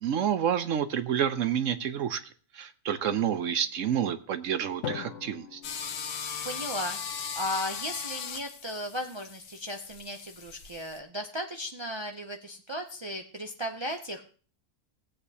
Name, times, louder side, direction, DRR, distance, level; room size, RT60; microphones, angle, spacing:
voice 1, 0.0-2.2 2.5-5.6, right 9 dB, 65° right, 11 dB, 1.0 m, -29 dB
Drum, 4.8-6.9, left 7 dB, 60° left, 1.0 m, -40 dB
sound 1, 5.6-11.0, left 7 dB, 90° left, 1.4 m, -38 dB
voice 2, 6.4-7.0 7.4-14.2, equal, 45° right, 2 dB, 0.3 m, -36 dB
17.0 x 8.1 x 2.8 m, 0.41 s
omnidirectional pair, 1.5 m